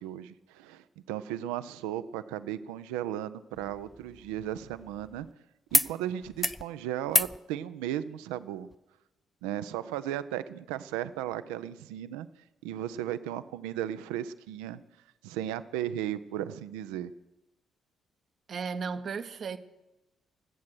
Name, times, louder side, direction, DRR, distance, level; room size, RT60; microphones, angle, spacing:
voice 1, 0.0-5.3 5.7-8.7 9.4-12.3 12.6-14.8 15.2-17.1, right 11 dB, 75° right, 0.5 m, -35 dB
sound 1, 3.5-5.3 5.7-5.9 6.2-6.6 7.1-7.4 8.7-8.8, left 1 dB, 15° left, 0.5 m, -30 dB
voice 2, 18.5-19.6, right 5 dB, 50° right, 0.8 m, -35 dB
23.5 x 8.5 x 6.2 m
figure-of-eight pair, 40°, 0 cm